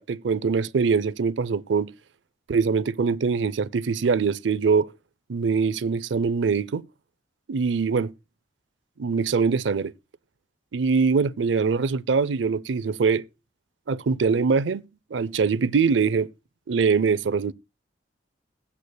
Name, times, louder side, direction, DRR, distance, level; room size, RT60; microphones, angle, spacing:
voice 1, 0.0-1.9 2.5-4.9 5.3-6.8 7.5-8.1 9.0-9.9 10.7-13.2 13.9-14.8 15.1-16.3 16.7-17.5, right 5 dB, 80° right, 0.5 m, -23 dB
20.0 x 8.3 x 2.3 m
head